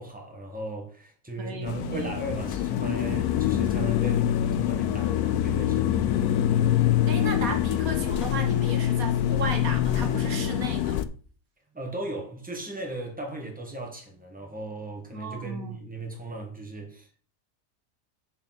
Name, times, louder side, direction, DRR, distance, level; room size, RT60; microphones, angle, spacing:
voice 1, 0.0-6.8 11.7-17.2, right 2 dB, 5° right, 2.0 m, -37 dB
voice 2, 1.4-2.1 7.1-11.0 15.1-15.8, right 4 dB, 70° right, 1.6 m, -35 dB
sound 1, 1.7-11.0, left 11 dB, 85° left, 1.2 m, -25 dB
7.0 x 4.8 x 6.2 m
omnidirectional pair, 1.6 m